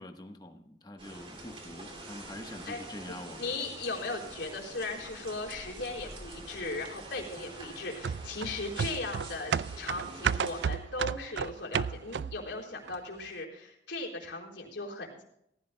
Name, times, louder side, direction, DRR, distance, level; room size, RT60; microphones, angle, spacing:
voice 1, 0.0-3.6, left 1 dB, 20° left, 6 dB, 1.1 m, -45 dB
sound 1, 1.0-10.7, right 2 dB, 30° right, 2.3 m, -46 dB
voice 2, 3.1-15.2, left 2 dB, 85° left, -1 dB, 4.3 m, -38 dB
sound 2, 8.0-12.5 12.9-13.0, right 7 dB, 80° right, 0.4 m, -32 dB
18.5 x 15.5 x 2.2 m, 0.74 s
head